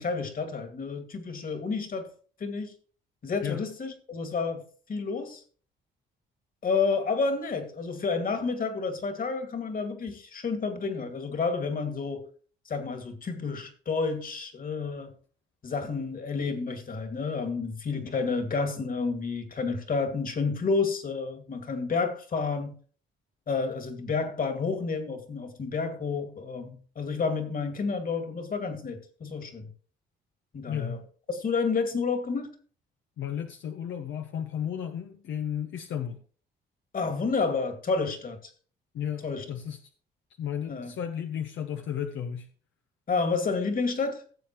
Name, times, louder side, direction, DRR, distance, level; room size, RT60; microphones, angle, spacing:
voice 1, 0.0-2.1 2.4-2.7 3.2-4.6 4.9-5.4 6.6-12.3 12.7-15.1 15.6-22.7 23.5-29.7 30.5-31.0 31.3-32.5 36.9-38.5 39.2-39.5 40.7-40.9 43.1-44.2, left 4 dB, 45° left, 2.4 m, -30 dB
voice 2, 30.7-31.1 33.2-36.2 38.9-39.8 40.4-42.5, left 9 dB, 75° left, 1.0 m, -33 dB
16.5 x 7.4 x 3.1 m
cardioid pair, 90°, 20 cm